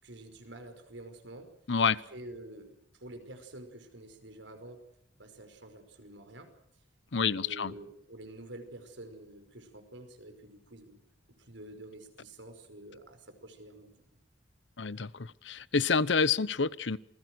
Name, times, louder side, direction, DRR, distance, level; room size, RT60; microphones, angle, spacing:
voice 1, 0.0-1.5 1.8-4.8 5.2-6.5 7.2-11.0 11.5-14.0, right 1 dB, 90° right, 5.4 m, -48 dB
voice 2, 7.1-7.7 14.8-17.0, left 5 dB, 75° left, 0.9 m, -28 dB
28.0 x 20.5 x 6.4 m
head